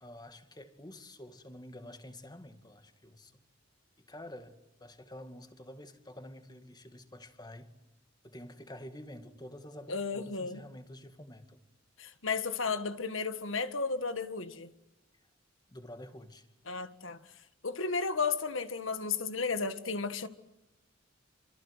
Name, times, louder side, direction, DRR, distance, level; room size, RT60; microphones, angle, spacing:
voice 1, 0.0-3.4 4.0-7.7 8.2-11.6 15.7-16.5, left 1 dB, 20° left, 2.1 m, -49 dB
voice 2, 9.9-10.6 12.0-14.7 16.7-17.2 17.6-20.3, left 4 dB, 75° left, 1.7 m, -33 dB
28.0 x 25.5 x 8.1 m
head